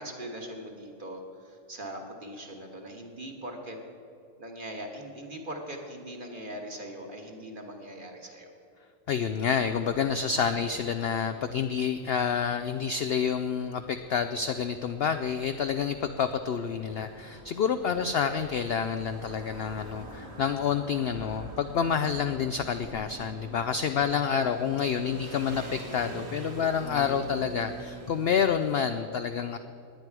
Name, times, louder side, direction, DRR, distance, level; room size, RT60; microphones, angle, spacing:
voice 1, 0.0-3.8 4.4-8.5 24.0-24.1, right 1 dB, 35° right, 2 dB, 1.6 m, -41 dB
voice 2, 9.1-29.6, left 7 dB, 65° left, 9 dB, 0.6 m, -28 dB
sound 1, 9.6-28.6, right 1 dB, 75° right, 2.4 m, -45 dB
19.5 x 9.3 x 4.7 m, 2.5 s
omnidirectional pair, 1.5 m